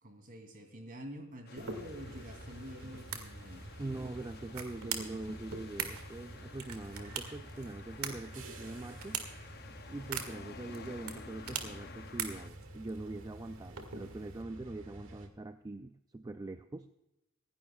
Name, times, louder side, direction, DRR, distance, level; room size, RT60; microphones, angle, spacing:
voice 1, 0.0-3.7, equal, 40° right, 4 dB, 2.8 m, -47 dB
sound 1, 1.5-12.5, left 6 dB, 50° left, 0.6 m, -53 dB
sound 2, 1.6-14.4, right 6 dB, 90° right, 2.0 m, -44 dB
sound 3, 1.7-15.3, right 1 dB, 65° right, 2.0 m, -50 dB
voice 2, 3.8-9.2 9.9-16.9, right 2 dB, 20° right, 8 dB, 0.4 m, -43 dB
25.0 x 11.5 x 2.3 m, 0.90 s
head